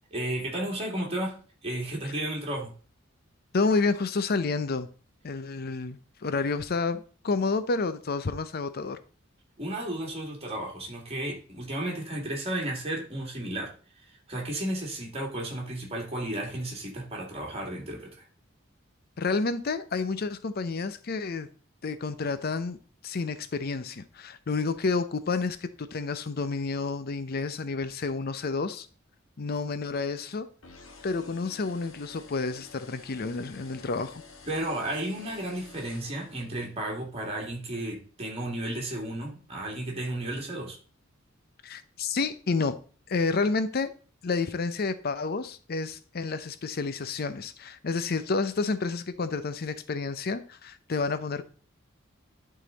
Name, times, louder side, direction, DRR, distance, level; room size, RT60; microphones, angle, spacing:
voice 1, 0.1-1.4 1.6-2.7 9.6-13.7 14.3-18.2 34.5-40.8, right 1 dB, 30° right, 2.2 m, -33 dB
voice 2, 3.5-4.9 5.2-9.0 19.2-21.5 21.8-22.8 23.0-28.9 29.4-30.5 31.0-34.2 41.6-42.8 43.1-43.9 44.2-51.4, left 4 dB, 50° left, 0.6 m, -30 dB
sound 1, 30.6-36.8, left 4 dB, 90° left, 1.4 m, -50 dB
11.0 x 3.9 x 3.9 m
head